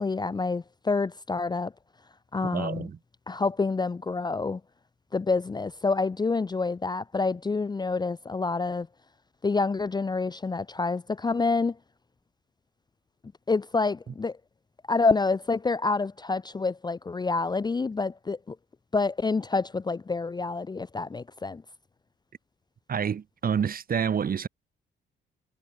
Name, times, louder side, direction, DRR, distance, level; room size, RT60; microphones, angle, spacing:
voice 1, 0.0-1.7 2.3-2.9 3.3-4.6 5.1-8.9 9.4-11.8 13.5-14.4 14.9-18.6 18.9-21.6, left 3 dB, 20° left, 0.6 m, -27 dB
voice 2, 2.5-3.0 22.9-24.5, right 7 dB, 45° right, 2.2 m, -28 dB
cardioid pair, 90°, 20 cm